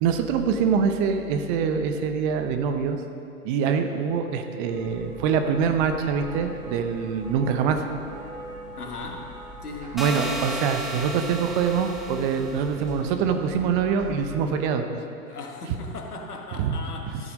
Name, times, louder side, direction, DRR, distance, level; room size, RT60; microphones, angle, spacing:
voice 1, 0.0-3.0 3.4-7.8 9.9-14.8 16.6-16.7, right 6 dB, 35° right, 6 dB, 0.8 m, -24 dB
sound 1, 4.7-14.5, equal, 15° right, 1.9 m, -42 dB
voice 2, 8.8-9.3 9.6-10.0 15.3-17.3, left 3 dB, 80° left, 2 dB, 1.4 m, -37 dB
sound 2, 10.0-12.9, right 1 dB, ahead, 0.8 m, -34 dB
13.5 x 5.8 x 5.2 m, 2.6 s
figure-of-eight pair, 100°, 45 cm